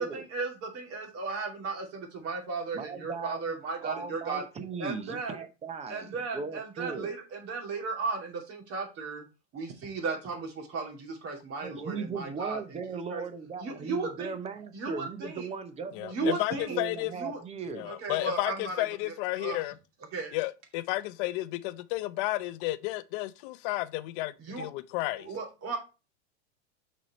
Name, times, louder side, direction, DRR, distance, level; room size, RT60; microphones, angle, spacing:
voice 1, 0.0-4.4 4.8-5.4 5.9-9.3 9.5-12.8 13.1-13.2 13.6-14.3 14.7-15.5 16.1-16.8 17.1-17.4 17.9-18.8 19.3-19.6 20.1-20.3 24.4-24.7 25.2-25.8, right 4 dB, 40° right, 2.6 m, -35 dB
voice 2, 2.7-7.1 11.6-16.4 16.7-17.9, right 5 dB, 20° right, 0.7 m, -38 dB
voice 3, 15.9-17.1 17.7-19.8 20.3-25.3, left 17 dB, 50° left, 0.6 m, -32 dB
6.1 x 4.3 x 4.3 m
supercardioid pair, 135°, 35 cm